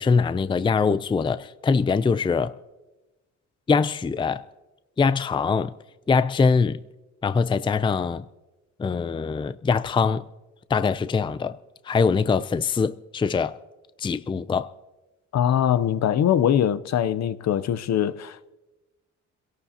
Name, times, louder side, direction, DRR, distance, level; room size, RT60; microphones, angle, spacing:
voice 1, 0.0-2.5 3.7-4.4 5.0-5.7 6.1-6.8 7.2-8.3 8.8-10.2 10.7-11.6 11.8-13.6 14.0-14.7, left 5 dB, 15° left, 0.4 m, -23 dB
voice 2, 15.3-18.5, left 10 dB, 60° left, 0.7 m, -22 dB
26.5 x 17.5 x 2.8 m
cardioid pair, 90°, 30 cm